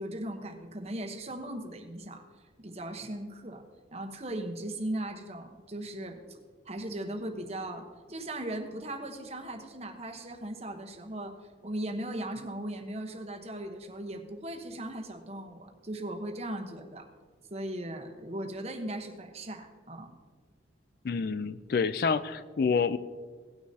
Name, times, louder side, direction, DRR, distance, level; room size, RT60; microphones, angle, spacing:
voice 1, 0.0-2.2 2.6-3.6 3.9-6.4 6.6-11.3 11.6-17.1 17.5-20.1, right 1 dB, 35° right, 4 dB, 1.1 m, -38 dB
voice 2, 21.0-23.0, left 5 dB, 55° left, 13 dB, 0.4 m, -28 dB
18.0 x 9.4 x 2.8 m, 1.6 s
head